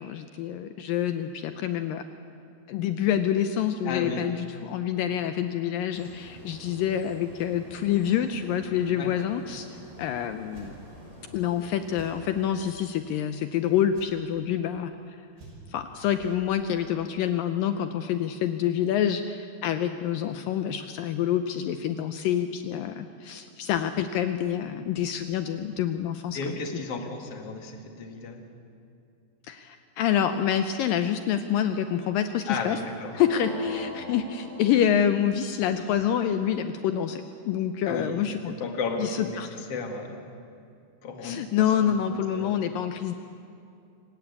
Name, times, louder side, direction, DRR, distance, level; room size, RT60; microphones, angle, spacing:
voice 1, 0.0-2.0 2.7-10.7 11.3-14.9 15.7-26.4 29.5-32.8 33.2-38.7 39.0-39.5 41.2-43.1, left 9 dB, 80° left, 9 dB, 2.0 m, -27 dB
voice 2, 3.8-4.3 9.0-9.1 26.3-28.4 32.5-33.1 37.8-40.2 41.0-41.4 41.8-42.0 42.3-42.6, left 4 dB, 45° left, 4 dB, 2.3 m, -33 dB
sound 1, 5.9-12.5, right 1 dB, 15° right, 4.9 m, -47 dB
sound 2, 9.9-10.1 10.5-10.7 11.9-12.1 13.9-14.1 15.4-15.8 16.2-16.4, right 4 dB, 80° right, 8.2 m, -48 dB
sound 3, 33.1-35.2, left 1 dB, 40° right, 6.4 m, -35 dB
26.5 x 17.0 x 8.5 m, 2.5 s
omnidirectional pair, 4.8 m